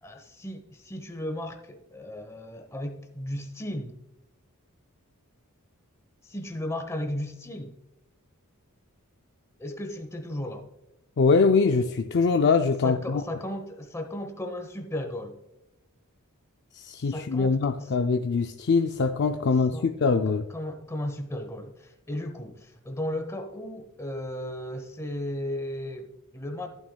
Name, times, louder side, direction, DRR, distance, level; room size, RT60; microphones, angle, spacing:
voice 1, 0.0-4.0 6.2-7.7 9.6-10.6 12.8-15.4 17.0-17.9 19.7-19.9 20.3-26.7, left 1 dB, 15° left, 0.9 m, -35 dB
voice 2, 11.2-13.2 16.7-20.5, left 4 dB, 50° left, 0.5 m, -23 dB
14.5 x 9.0 x 2.3 m
head